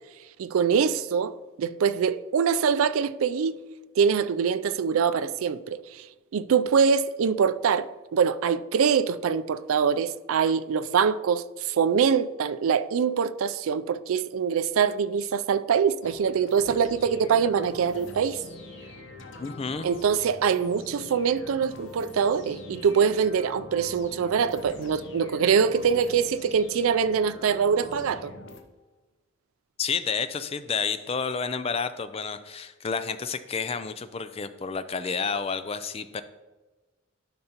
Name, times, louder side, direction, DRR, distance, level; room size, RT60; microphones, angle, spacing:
voice 1, 0.4-3.6 4.0-6.0 6.3-18.4 19.8-28.3, right 6 dB, 80° right, 0.4 m, -24 dB
sound 1, 16.0-28.6, left 2 dB, 60° left, 0.8 m, -44 dB
voice 2, 19.4-19.9 29.8-36.2, left 5 dB, 30° left, 0.4 m, -30 dB
12.0 x 5.4 x 2.9 m
head